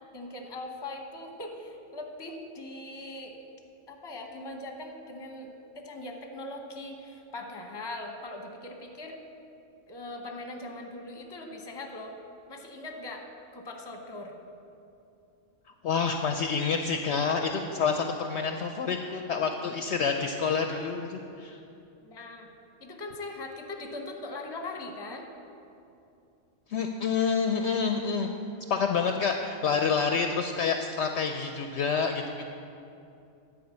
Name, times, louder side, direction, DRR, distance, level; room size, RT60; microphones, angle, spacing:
voice 1, 0.1-3.4 3.9-5.5 5.7-9.2 9.9-12.2 12.5-13.2 13.5-14.3 22.0-22.5 22.8-25.3, left 2 dB, 20° left, 3 dB, 0.9 m, -40 dB
voice 2, 15.8-21.6 26.7-28.3 28.7-32.5, left 5 dB, 65° left, 5 dB, 0.7 m, -28 dB
10.5 x 5.0 x 8.1 m, 2.7 s
omnidirectional pair, 1.4 m